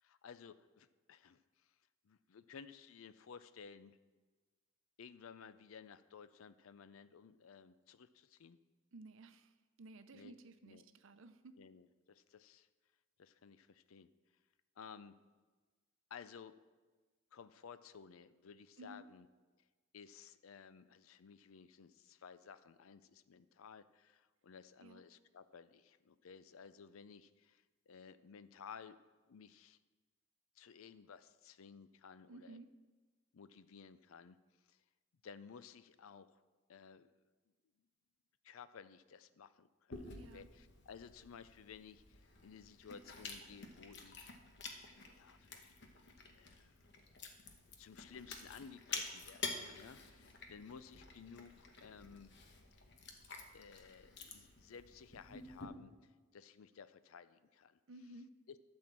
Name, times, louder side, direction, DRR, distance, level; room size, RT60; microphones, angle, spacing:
voice 1, 0.0-1.7 2.0-4.0 5.0-8.6 10.1-10.3 10.7-10.8 11.6-12.7 13.2-14.1 14.8-15.1 16.1-16.6 17.3-19.3 19.9-29.0 29.3-29.8 30.6-32.6 33.3-34.4 34.7-34.8 35.2-36.4 36.7-37.1 38.4-44.4 45.1-46.8 47.8-52.3 53.5-57.8 58.5-58.7, left 6 dB, 90° left, 14 dB, 0.5 m, -56 dB
voice 2, 8.9-11.6 18.8-19.1 24.8-25.0 32.3-32.7 40.1-40.5 57.9-58.3, right 2 dB, 70° right, 10 dB, 0.6 m, -55 dB
Chewing mastication, 39.9-55.6, left 4 dB, 55° left, 1.1 m, -50 dB
12.0 x 4.4 x 7.5 m, 1.3 s
head